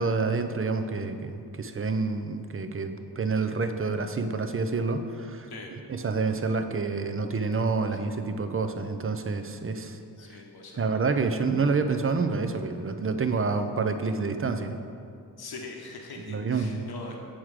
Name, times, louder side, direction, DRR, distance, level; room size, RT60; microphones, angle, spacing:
voice 1, 0.0-10.0 10.3-10.4 10.8-14.8 16.3-16.8, right 4 dB, 35° right, 7 dB, 0.5 m, -28 dB
voice 2, 10.2-10.9 15.4-17.2, left 3 dB, 60° left, 1 dB, 1.0 m, -42 dB
7.4 x 4.8 x 4.8 m, 2.5 s
wide cardioid pair, 95°, 42 cm